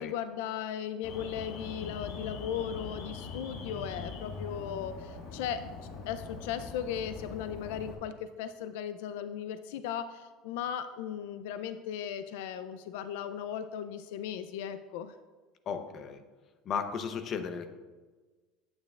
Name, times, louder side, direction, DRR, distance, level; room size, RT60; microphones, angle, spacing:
voice 1, 0.0-5.7 6.1-15.1, left 9 dB, 80° left, 11 dB, 0.4 m, -37 dB
Alarm, 1.0-7.9, left 4 dB, 50° left, 1.3 m, -42 dB
voice 2, 15.7-16.2 16.7-17.7, left 6 dB, 35° left, 7 dB, 0.6 m, -35 dB
9.7 x 8.6 x 2.4 m, 1.3 s
cardioid pair, 155°, 0 cm